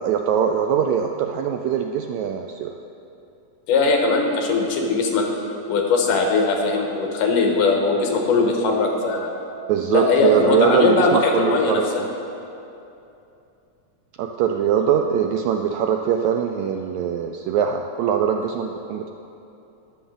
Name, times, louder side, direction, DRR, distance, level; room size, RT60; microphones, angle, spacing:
voice 1, 0.0-2.7 9.7-12.1 14.2-19.1, right 8 dB, 85° right, 4 dB, 1.6 m, -22 dB
voice 2, 3.7-5.3 5.7-9.3 9.9-12.0, left 4 dB, 80° left, 1 dB, 2.7 m, -20 dB
21.0 x 7.4 x 3.8 m, 2.8 s
omnidirectional pair, 3.7 m